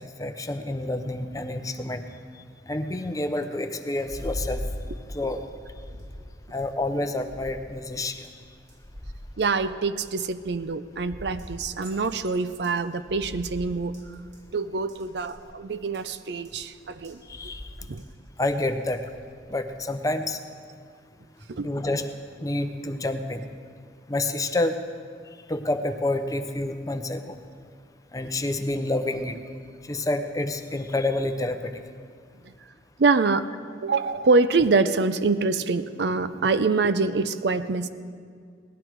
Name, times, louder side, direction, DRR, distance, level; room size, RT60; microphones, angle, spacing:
voice 1, 0.0-2.0 2.7-4.7 5.1-5.4 6.5-8.3 17.3-17.7 18.4-19.1 19.5-20.4 21.6-22.1 22.4-23.5 24.1-24.8 25.5-27.4 28.1-29.4 29.8-31.7, left 2 dB, 20° left, 7 dB, 0.6 m, -28 dB
sound 1, 4.0-19.9, equal, 40° right, 1.9 m, -41 dB
voice 2, 9.4-14.0 14.5-17.2 17.9-18.0 21.5-21.7 33.0-33.5 33.8-37.9, right 4 dB, 65° right, 12 dB, 0.5 m, -25 dB
18.0 x 12.0 x 4.6 m, 2.1 s
head